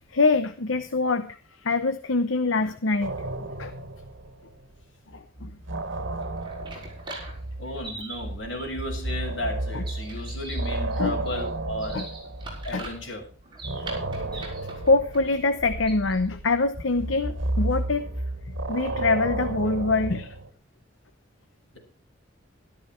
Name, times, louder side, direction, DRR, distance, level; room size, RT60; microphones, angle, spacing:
voice 1, 0.1-3.7 5.1-5.6 6.7-6.8 9.7-9.8 11.0-11.2 11.9-12.1 12.7-12.8 14.3-14.5 14.8-18.1 18.5-20.4, left 3 dB, 85° left, 10 dB, 0.9 m, -25 dB
sound 1, 3.0-4.9 5.1-13.1 13.6-20.5, right 2 dB, 85° right, 1.7 m, -32 dB
sound 2, 6.1-16.3, right 2 dB, 25° right, 6.4 m, -42 dB
voice 2, 7.6-12.0 12.6-13.2, left 1 dB, 70° left, 1 dB, 6.5 m, -34 dB
13.5 x 13.5 x 4.5 m, 0.39 s
head